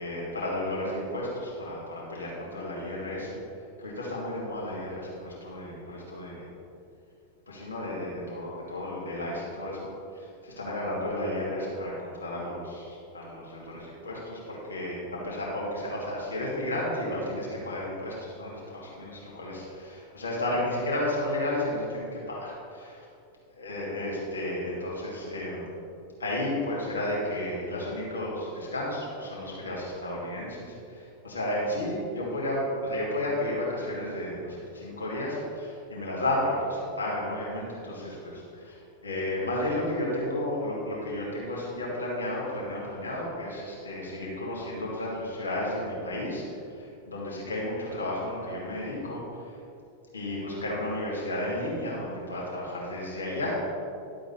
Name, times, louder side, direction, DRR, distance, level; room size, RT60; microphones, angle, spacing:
voice 1, 0.0-3.4 3.8-6.5 7.5-23.0 23.6-25.7 26.2-46.4 46.7-49.2 50.1-53.6, left 1 dB, 75° left, -5 dB, 2.6 m, -32 dB
12.0 x 7.6 x 4.3 m, 2.5 s
figure-of-eight pair, 90°, 0 cm